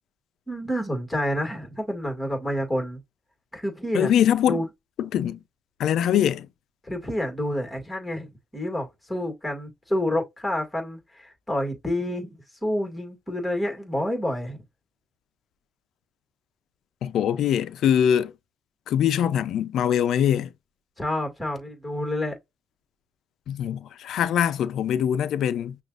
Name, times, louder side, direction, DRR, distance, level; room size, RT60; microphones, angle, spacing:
voice 1, 0.5-3.0 3.5-4.1 4.5-4.7 6.8-14.6 21.0-22.4, left 1 dB, 10° left, 2.1 m, -29 dB
voice 2, 3.9-4.6 5.0-5.4 5.8-6.5 17.0-18.3 18.9-20.5 23.5-25.7, left 9 dB, 75° left, 0.5 m, -23 dB
6.0 x 2.4 x 2.5 m
cardioid pair, 90°, 0 cm